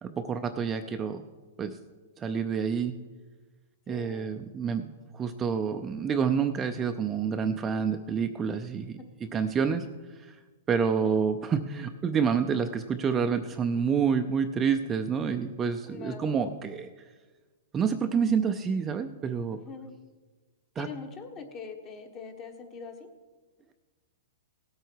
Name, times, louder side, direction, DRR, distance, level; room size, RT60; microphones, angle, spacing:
voice 1, 0.0-1.2 1.6-1.8 2.2-3.0 3.9-9.9 10.2-10.4 10.7-16.9 17.7-19.6 20.8-20.9, right 6 dB, 20° right, 6 dB, 0.5 m, -28 dB
voice 2, 3.9-4.3 10.8-11.2 15.8-16.5 19.5-19.9 20.8-23.1, left 5 dB, 25° left, 5 dB, 1.3 m, -43 dB
17.5 x 8.0 x 4.6 m, 1.3 s
hypercardioid pair, 145°, 0 cm